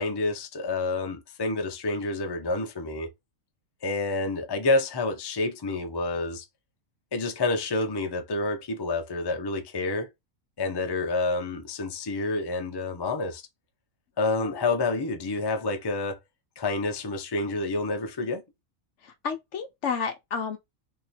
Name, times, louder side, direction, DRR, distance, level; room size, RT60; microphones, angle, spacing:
voice 1, 0.0-3.1 3.8-6.4 7.1-10.1 10.6-13.4 14.2-16.2 16.6-18.4, left 2 dB, 30° left, 0.4 m, -28 dB
voice 2, 14.2-14.6 19.0-20.6, left 6 dB, 60° left, 1.0 m, -32 dB
3.1 x 2.8 x 4.3 m
omnidirectional pair, 1.5 m